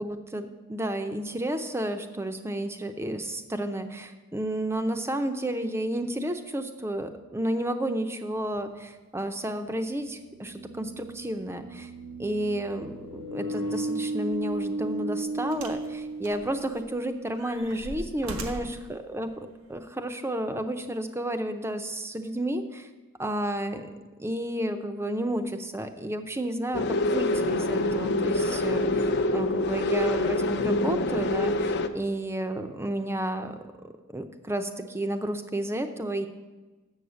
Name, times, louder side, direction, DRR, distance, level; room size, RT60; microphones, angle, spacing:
voice 1, 0.0-11.9 12.2-19.3 19.7-22.9 23.2-23.9 24.2-33.6 34.1-36.3, right 1 dB, 10° right, 7 dB, 0.5 m, -31 dB
sound 1, 8.6-8.7 10.2-17.0, right 2 dB, 70° right, 1.1 m, -35 dB
sound 2, 14.3-14.5 15.5-15.9 16.2-16.9 17.3-18.8 19.7-19.8, right 1 dB, 90° right, 1.3 m, -39 dB
sound 3, 26.7-31.9, left 2 dB, 50° left, 0.5 m, -26 dB
7.7 x 6.4 x 8.0 m, 1.2 s
head